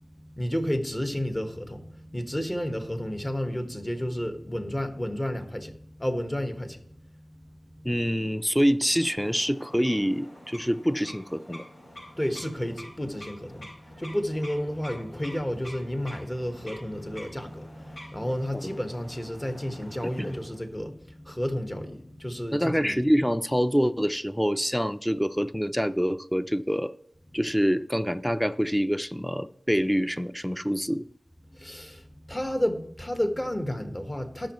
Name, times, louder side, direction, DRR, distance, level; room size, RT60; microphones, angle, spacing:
voice 1, 0.0-7.9 12.1-23.0 31.5-34.5, equal, 25° left, 1.6 m, -32 dB
voice 2, 7.8-11.6 20.2-20.4 22.5-26.9 27.3-31.0, equal, 5° left, 0.6 m, -26 dB
sound 1, 8.8-20.7, left 1 dB, 85° left, 5.0 m, -47 dB
19.0 x 6.5 x 3.1 m
cardioid pair, 40°, 0 cm